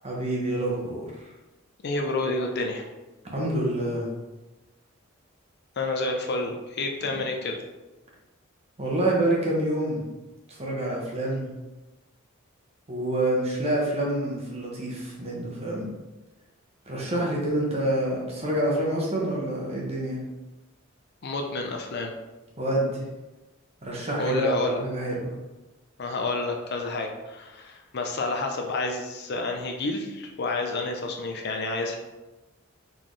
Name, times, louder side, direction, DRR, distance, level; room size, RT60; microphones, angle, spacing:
voice 1, 0.0-1.1 3.3-4.1 8.8-10.0 10.5-11.5 12.9-15.9 16.9-20.2 22.6-23.0 23.8-25.3, right 1 dB, 30° right, -3 dB, 1.0 m, -27 dB
voice 2, 1.8-2.8 5.8-7.6 21.2-22.1 24.2-24.8 26.0-32.0, left 2 dB, 50° left, 3 dB, 0.5 m, -29 dB
4.2 x 3.7 x 3.2 m, 1.1 s
head